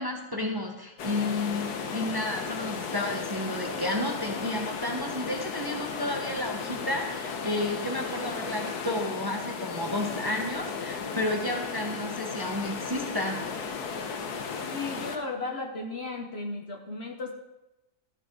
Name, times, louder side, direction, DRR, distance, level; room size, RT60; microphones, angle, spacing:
voice 1, 0.0-13.4, left 1 dB, 15° right, 1 dB, 1.1 m, -32 dB
sound 1, 1.0-15.2, left 5 dB, 85° left, 1.5 m, -35 dB
voice 2, 14.7-17.3, left 3 dB, 45° left, 3 dB, 1.1 m, -35 dB
14.0 x 7.5 x 4.7 m, 0.96 s
omnidirectional pair, 1.6 m